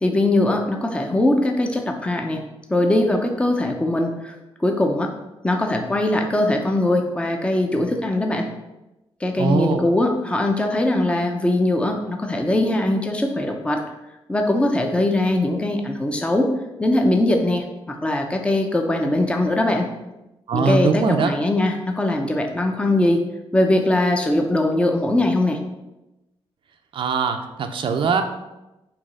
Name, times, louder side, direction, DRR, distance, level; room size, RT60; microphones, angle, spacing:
voice 1, 0.0-2.4 2.7-5.1 5.4-8.5 9.2-13.8 14.3-16.5 16.8-19.9 20.5-23.2 23.5-25.6, left 1 dB, 10° left, 3 dB, 0.7 m, -21 dB
voice 2, 9.4-9.8 20.5-21.3 26.9-28.2, right 5 dB, 60° right, 5 dB, 0.6 m, -21 dB
6.8 x 3.0 x 5.5 m, 0.98 s
cardioid pair, 110°, 10 cm